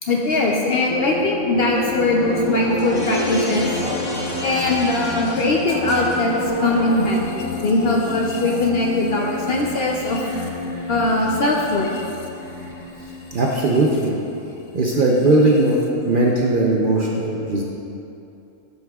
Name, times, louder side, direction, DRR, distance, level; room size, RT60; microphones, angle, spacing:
voice 1, 0.0-3.7 4.4-10.2 10.9-11.9, left 2 dB, 60° left, -1 dB, 0.7 m, -21 dB
sound 1, 0.9-15.9, left 2 dB, 85° left, 1.1 m, -30 dB
sound 2, 1.7-7.2, left 1 dB, 35° left, 1.4 m, -30 dB
sound 3, 6.2-13.6, right 1 dB, 25° right, 1.1 m, -38 dB
voice 2, 13.3-14.1 14.7-17.6, right 2 dB, 55° right, -3 dB, 0.6 m, -18 dB
12.5 x 5.6 x 2.3 m, 2.8 s
omnidirectional pair, 1.4 m